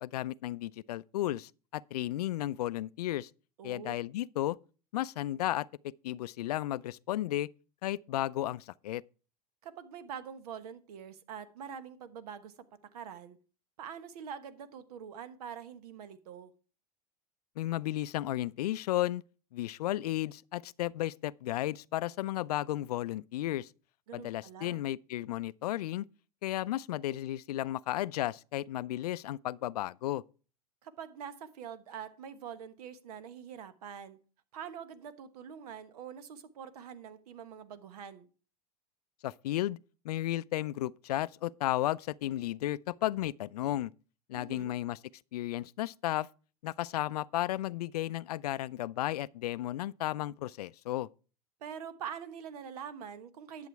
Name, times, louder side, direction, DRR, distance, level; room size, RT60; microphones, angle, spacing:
voice 1, 0.0-3.3 3.6-4.6 4.9-7.5 7.8-9.0 17.6-19.2 19.5-23.7 24.1-26.0 26.4-30.2 39.2-39.8 40.0-43.9 44.3-45.0 45.3-46.3 46.6-51.1, left 14 dB, 75° left, 0.4 m, -34 dB
voice 2, 3.6-3.9 9.6-12.5 12.9-13.4 13.8-16.5 24.1-24.8 30.8-34.2 34.5-38.3 44.3-44.8 51.6-53.7, right 8 dB, 70° right, 1.2 m, -45 dB
11.0 x 7.2 x 4.6 m
hypercardioid pair, 90°, 20 cm